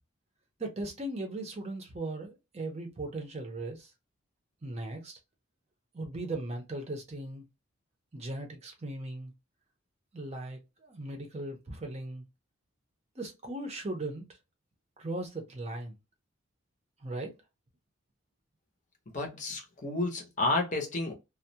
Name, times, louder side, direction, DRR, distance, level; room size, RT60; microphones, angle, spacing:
voice 1, 0.6-3.9 4.6-5.2 5.9-7.5 8.1-9.3 10.1-12.3 13.2-14.2 15.0-15.9 17.0-17.3, right 2 dB, 30° right, 0.6 m, -38 dB
voice 2, 19.1-21.1, left 2 dB, 35° left, 0.6 m, -31 dB
2.2 x 2.0 x 2.7 m
head